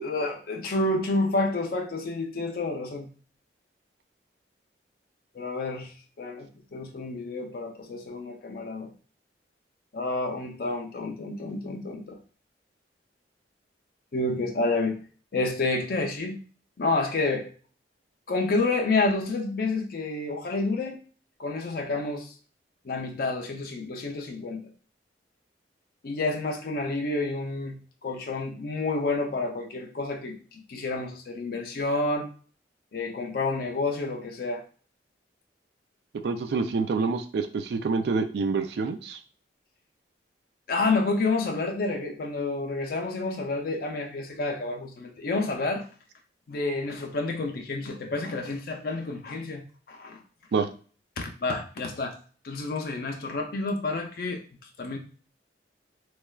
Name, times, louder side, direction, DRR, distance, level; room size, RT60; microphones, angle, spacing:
voice 1, 0.0-3.1 5.3-5.9 6.2-8.9 9.9-12.2 14.1-15.0 15.3-16.4 16.8-17.5 18.3-21.0 21.4-22.3 22.8-24.6 26.0-27.8 28.0-32.3 32.9-34.6 40.7-45.9 46.5-50.2 51.2-52.2 52.4-54.4 54.8-55.0, left 3 dB, 55° left, 3 dB, 0.4 m, -29 dB
voice 2, 36.2-39.2 50.5-50.7, right 4 dB, 60° right, 8 dB, 0.3 m, -27 dB
3.1 x 2.3 x 2.3 m, 0.39 s
head